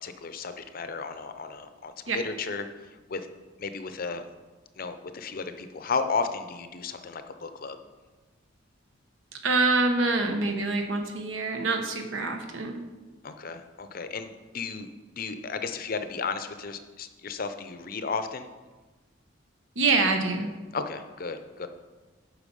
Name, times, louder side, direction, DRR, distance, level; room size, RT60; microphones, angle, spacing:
voice 1, 0.0-3.3 3.6-4.2 4.8-7.8 13.2-18.5 20.7-21.7, left 4 dB, 50° left, 9 dB, 0.6 m, -34 dB
voice 2, 9.3-12.8 19.7-20.5, right 3 dB, 85° right, 4 dB, 1.1 m, -26 dB
8.3 x 5.8 x 5.4 m, 1.3 s
head